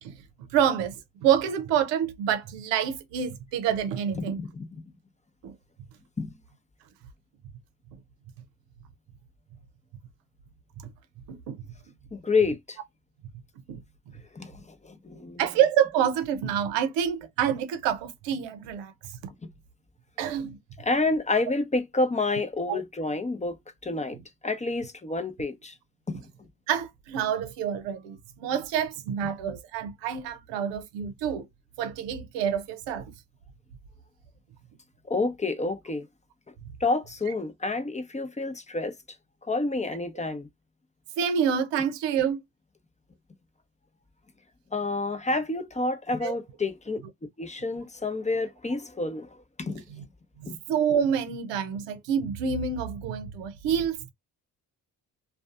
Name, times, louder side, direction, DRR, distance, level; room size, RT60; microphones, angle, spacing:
voice 1, 0.5-0.9 1.2-4.4 5.4-5.5 7.9-8.0 11.3-11.7 13.7-13.8 15.4-18.9 20.2-20.6 22.7-22.8 26.7-31.5 31.8-33.1 41.2-42.4 46.2-46.4 50.7-54.1, right 8 dB, 75° right, 0.7 m, -27 dB
voice 2, 4.1-4.8 6.2-6.3 12.1-12.8 14.3-15.4 20.8-25.8 26.1-26.5 35.1-36.1 36.8-38.9 39.4-40.5 44.7-47.0 47.4-49.8 50.5-50.6, left 3 dB, 15° left, 0.7 m, -29 dB
2.4 x 2.3 x 2.4 m
hypercardioid pair, 50°, 44 cm